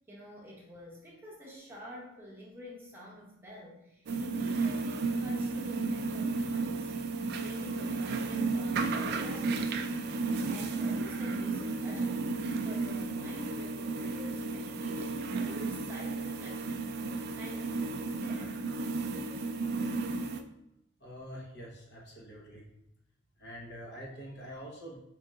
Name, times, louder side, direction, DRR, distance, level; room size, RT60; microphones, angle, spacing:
voice 1, 0.1-6.9 7.3-12.4 12.6-18.7, left 1 dB, 10° right, -5 dB, 0.8 m, -48 dB
sound 1, 4.1-20.4, right 3 dB, 50° right, 0.3 m, -33 dB
voice 2, 21.0-22.6 23.4-25.0, equal, 55° left, -3 dB, 1.1 m, -45 dB
4.6 x 2.7 x 3.6 m, 0.81 s
head